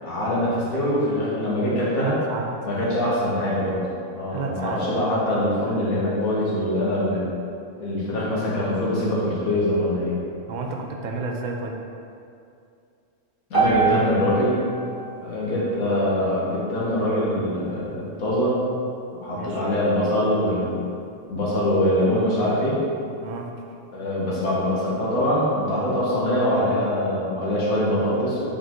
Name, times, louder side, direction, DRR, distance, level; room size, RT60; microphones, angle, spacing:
voice 1, 0.0-2.2 2.7-3.9 4.1-7.2 7.8-10.2 13.5-14.6 15.2-18.6 19.2-20.8 21.3-22.8 23.9-28.5, left 1 dB, 90° left, -7 dB, 2.0 m, -23 dB
voice 2, 2.0-2.5 4.3-4.8 10.5-11.8 19.3-19.6 23.2-23.5, right 3 dB, 80° right, 1 dB, 0.4 m, -31 dB
sound 1, 13.5-17.7, right 5 dB, 30° right, 0.8 m, -28 dB
5.4 x 4.7 x 3.8 m, 2.5 s
omnidirectional pair, 1.5 m